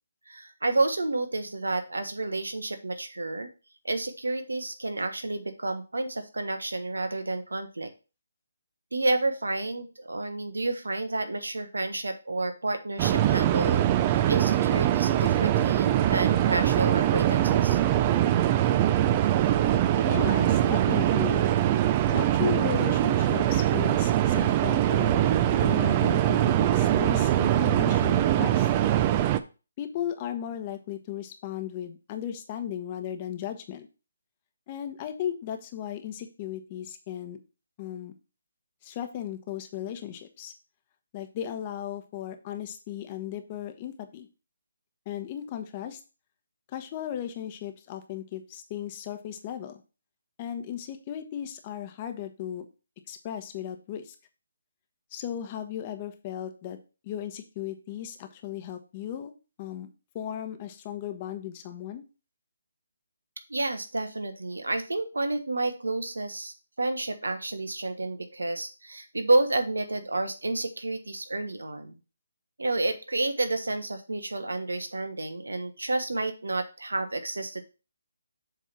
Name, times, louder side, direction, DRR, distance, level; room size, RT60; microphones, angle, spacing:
voice 1, 0.3-3.5 3.8-7.9 8.9-17.8 63.5-71.9 72.6-77.6, right 2 dB, 85° right, 8 dB, 1.3 m, -30 dB
sound 1, 13.0-29.4, right 12 dB, 25° right, 0.5 m, -23 dB
voice 2, 19.6-21.5 22.1-25.2 25.5-28.7 29.8-33.9 34.7-37.4 37.8-38.1 38.8-40.5 41.1-44.3 45.1-46.0 46.7-49.8 50.4-52.7 53.1-54.1 55.1-56.8 57.0-59.3 59.6-59.9 60.1-62.0, left 10 dB, 30° left, 7 dB, 1.0 m, -36 dB
7.4 x 3.5 x 5.8 m, 0.32 s
figure-of-eight pair, 155°, 0 cm